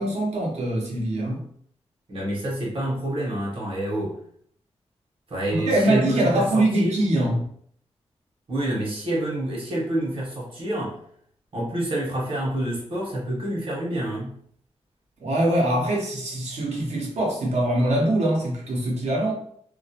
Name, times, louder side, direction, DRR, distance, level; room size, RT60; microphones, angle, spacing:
voice 1, 0.0-1.4 5.5-7.4 15.2-19.3, right 1 dB, 85° right, -2 dB, 0.8 m, -23 dB
voice 2, 2.1-4.1 5.3-7.0 8.5-11.0 11.5-14.3, right 1 dB, 55° right, -4 dB, 0.9 m, -28 dB
2.3 x 2.0 x 2.7 m, 0.63 s
wide cardioid pair, 95°, 11 cm